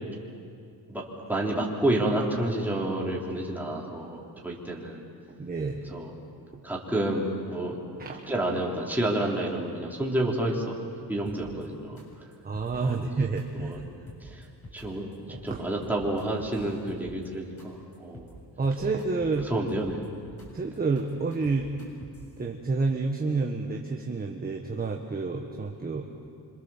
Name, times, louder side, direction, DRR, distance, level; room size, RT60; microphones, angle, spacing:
voice 1, 0.9-5.0 5.9-6.1 6.6-7.8 8.3-10.8 11.1-12.0 12.8-13.1 13.6-13.8 14.2-14.5 14.7-15.1 15.4-18.3 19.5-20.0, right 1 dB, 5° right, -3 dB, 4.1 m, -29 dB
voice 2, 5.4-5.8 8.0-8.3 12.4-13.8 15.3-15.6 18.6-19.5 20.5-21.7 22.4-26.0, right 3 dB, 20° right, 1 dB, 1.6 m, -29 dB
sound 1, 11.3-11.6 12.0-12.1 12.3-12.7 13.0-13.7 14.1-14.8 15.1-15.5 15.8-17.3 17.6-17.7 17.9-18.3 18.6-19.4 19.7-20.5 20.7-22.3, left 1 dB, 35° left, 7.7 m, -46 dB
26.5 x 26.0 x 7.5 m, 2.4 s
cardioid pair, 135°, 40 cm